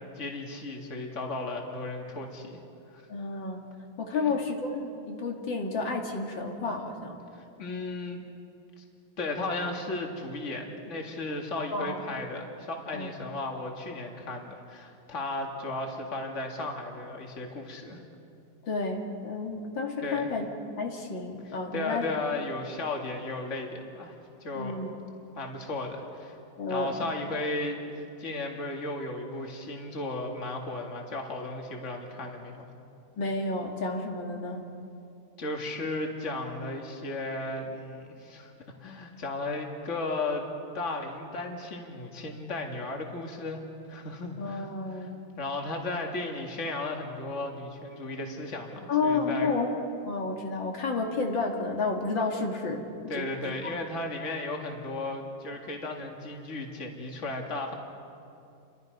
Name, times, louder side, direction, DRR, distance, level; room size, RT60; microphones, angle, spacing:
voice 1, 0.0-2.6 2.9-3.0 4.1-4.3 7.3-8.2 8.8-8.9 9.2-18.0 20.0-20.3 21.4-24.8 25.3-26.4 26.7-32.7 35.4-38.5 38.8-40.4 40.7-43.6 43.9-45.1 45.4-49.5 53.1-57.7, left 2 dB, 40° left, 1 dB, 2.4 m, -35 dB
voice 2, 3.1-3.7 4.0-7.2 11.7-12.0 12.9-13.1 18.6-20.4 20.8-22.0 24.5-24.9 26.6-27.1 33.2-34.7 44.4-45.2 48.9-49.7 50.1-53.3 53.6-53.8, left 3 dB, 75° left, 1 dB, 2.7 m, -31 dB
30.0 x 23.5 x 5.3 m, 2.6 s
omnidirectional pair, 2.1 m